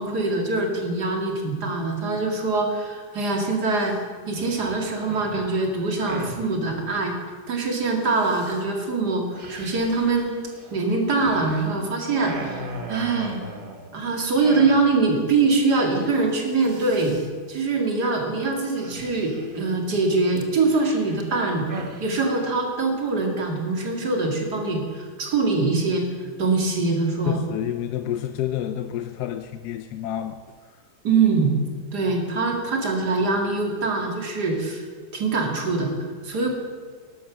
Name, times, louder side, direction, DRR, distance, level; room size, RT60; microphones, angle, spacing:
voice 1, 0.0-4.0 4.3-7.1 7.5-10.4 10.7-13.4 13.9-17.2 17.5-21.7 22.0-26.1 26.4-27.4 31.0-31.5 31.9-34.8 35.1-36.5, right 3 dB, 70° right, 2 dB, 2.7 m, -23 dB
sound 1, 3.7-4.0 4.3-6.5 8.0-8.6 9.3-11.8 12.0-14.0 14.4-15.2 15.5-15.6 15.8-16.1 16.4-17.3 18.7-19.7 20.4-22.1, right 2 dB, 35° right, 1.2 m, -39 dB
voice 2, 27.2-30.4, left 11 dB, 75° left, 10 dB, 1.1 m, -29 dB
12.5 x 12.0 x 6.1 m, 1.5 s
omnidirectional pair, 1.8 m